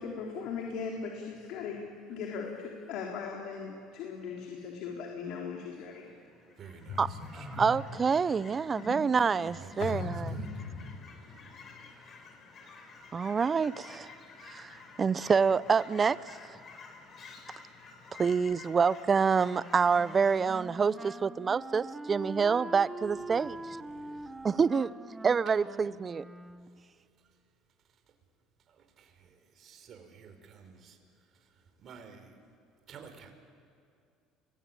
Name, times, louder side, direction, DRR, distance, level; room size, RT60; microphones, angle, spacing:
voice 1, 0.0-6.1 6.9-7.7 8.7-9.0 9.8-11.7, left 5 dB, 70° left, 3.9 m, -39 dB
Fowl / Chirp tweet, 5.6-20.4, left 4 dB, 45° left, 5.9 m, -52 dB
voice 2, 6.6-7.6 9.5-10.0 10.3-10.5 23.0-24.6 28.7-31.0 31.3-32.4 32.9-33.3, right 6 dB, 50° right, 4.6 m, -52 dB
voice 3, 7.3-10.3 13.1-14.1 14.5-16.2 18.2-23.6 24.4-24.9 25.2-26.2, right 5 dB, 35° right, 0.7 m, -27 dB
Wind instrument woodwind instrument, 19.5-26.9, right 2 dB, 15° right, 1.4 m, -44 dB
29.0 x 21.5 x 9.0 m
supercardioid pair, 80°, 0 cm